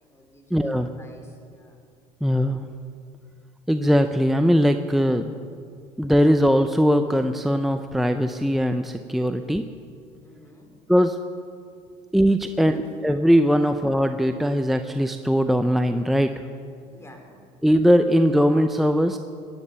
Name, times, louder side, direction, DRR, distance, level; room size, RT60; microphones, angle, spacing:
voice 1, 0.0-1.8 10.2-10.7 11.7-12.0 12.4-13.0 13.6-13.8 16.8-17.4, left 1 dB, 15° left, 3 dB, 3.5 m, -49 dB
voice 2, 0.5-0.9 2.2-2.6 3.7-5.3 6.0-9.7 10.9-11.2 12.1-16.3 17.6-19.2, equal, ahead, 7 dB, 0.6 m, -20 dB
17.5 x 10.5 x 6.8 m, 2.3 s
supercardioid pair, 95°, 15 cm